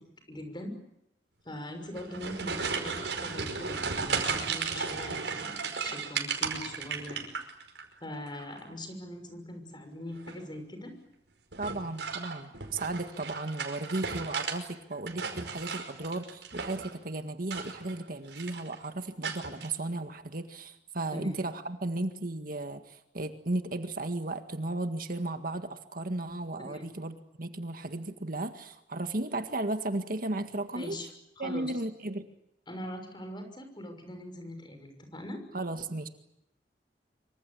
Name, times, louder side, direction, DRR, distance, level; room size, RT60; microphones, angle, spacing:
voice 1, 0.3-0.8 1.4-5.6 5.8-7.2 8.0-11.0 21.1-21.4 26.7-26.9 30.7-31.1 31.4-31.7 32.7-35.4, left 1 dB, 25° left, 6 dB, 6.2 m, -41 dB
sound 1, 1.8-7.8 8.1-8.7 10.1-10.5 11.5-14.6 14.9-16.9 17.4-18.0 18.3-18.7 19.2-19.7, right 5 dB, 90° right, 5.1 m, -35 dB
voice 2, 11.6-31.0 31.4-32.3 35.5-36.1, right 2 dB, 55° right, 8 dB, 1.8 m, -35 dB
26.0 x 24.5 x 8.6 m, 0.83 s
head